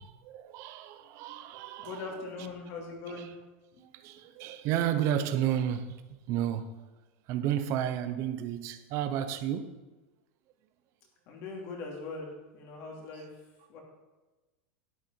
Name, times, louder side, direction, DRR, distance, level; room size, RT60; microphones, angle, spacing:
voice 1, 0.0-2.0 3.1-3.3 3.8-6.0 6.3-6.7 7.3-9.8, right 10 dB, 45° right, 0.9 m, -32 dB
voice 2, 1.8-3.3 11.3-13.3 13.7-13.8, left 3 dB, 50° left, 3.0 m, -40 dB
11.0 x 8.5 x 4.6 m
supercardioid pair, 145°, 7 cm